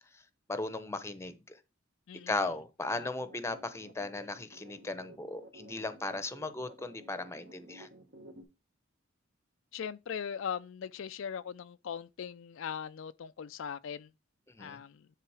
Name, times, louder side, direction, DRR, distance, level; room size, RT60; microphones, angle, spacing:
voice 1, 0.5-1.4 2.3-7.9 14.6-14.8, left 2 dB, 15° left, 0.7 m, -37 dB
voice 2, 2.1-2.5 3.0-3.1 9.7-14.1 14.6-15.1, left 7 dB, 70° left, 0.4 m, -40 dB
sound 1, 2.9-8.4, right 1 dB, 65° right, 1.7 m, -54 dB
9.9 x 3.7 x 4.8 m
head